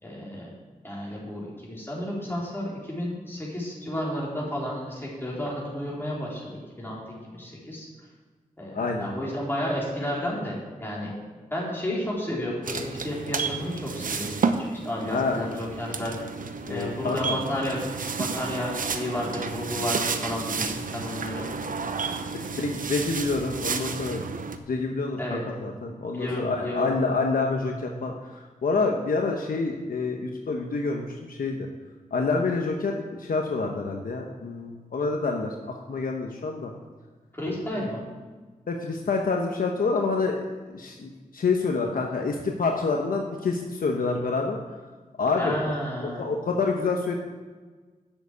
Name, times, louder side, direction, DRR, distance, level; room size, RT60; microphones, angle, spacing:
voice 1, 0.0-0.5 0.8-7.9 8.6-11.1 11.5-16.2 16.7-17.8 18.2-21.5 25.2-25.4 26.1-26.9 37.3-38.0 45.4-46.2, left 1 dB, 15° left, -5 dB, 4.0 m, -32 dB
voice 2, 8.7-9.1 15.1-15.4 16.7-17.4 22.1-24.3 24.7-31.7 32.1-36.7 38.7-44.6 45.2-45.7 46.2-47.1, left 4 dB, 80° left, 2 dB, 1.0 m, -27 dB
sound 1, 12.6-24.6, right 5 dB, 70° right, 0.8 m, -31 dB
7.8 x 6.9 x 8.3 m, 1.4 s
cardioid pair, 55°, 15 cm